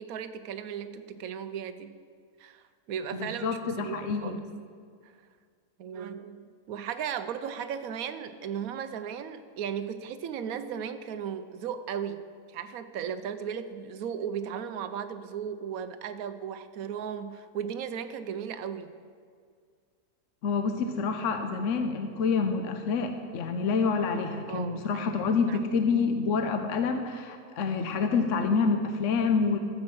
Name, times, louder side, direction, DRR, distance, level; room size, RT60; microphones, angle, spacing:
voice 1, 0.0-2.0 2.4-4.5 5.0-5.1 5.8-18.9 24.5-25.2 25.5-25.6, right 8 dB, 70° right, 11 dB, 1.1 m, -36 dB
voice 2, 3.2-4.4 20.4-29.6, left 5 dB, 60° left, 6 dB, 1.0 m, -27 dB
13.5 x 7.8 x 6.2 m, 2.1 s
omnidirectional pair, 1.6 m